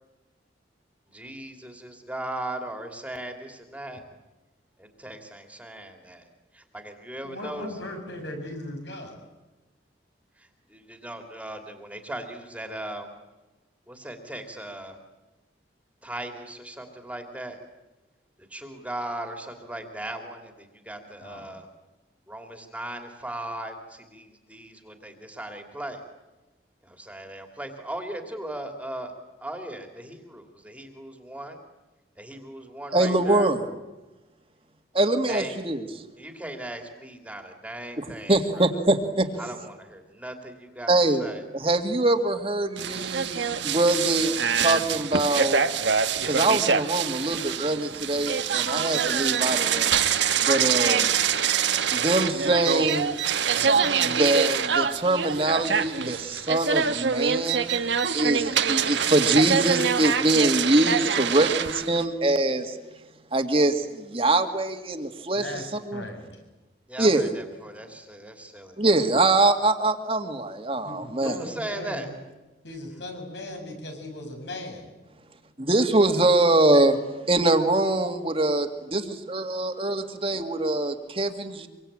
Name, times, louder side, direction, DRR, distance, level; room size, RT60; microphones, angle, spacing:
voice 1, 1.1-4.0 4.8-6.3 6.5-7.8 10.4-13.1 13.9-15.0 16.0-17.6 18.5-21.7 22.3-26.0 26.8-29.1 29.4-31.6 32.2-33.5 35.3-35.5 36.2-38.7 39.4-41.4 66.9-68.8 71.2-72.1 76.1-76.2, right 1 dB, 5° right, 4 dB, 2.8 m, -38 dB
voice 2, 7.2-9.2 21.2-21.5 65.3-65.6 65.9-66.4 70.8-72.1 72.6-74.9, left 1 dB, 70° left, 3 dB, 7.5 m, -37 dB
voice 3, 32.9-33.6 34.9-35.8 38.0-39.3 40.9-41.3 41.5-45.6 46.2-49.9 50.4-51.1 51.9-53.2 54.0-62.8 63.3-65.4 65.9-66.0 67.0-67.4 68.8-71.4 75.6-77.0 77.3-81.7, right 2 dB, 30° right, 6 dB, 2.2 m, -23 dB
sound 1, 42.8-62.0, right 7 dB, 75° right, 1.3 m, -25 dB
26.0 x 24.5 x 8.9 m, 1.1 s
head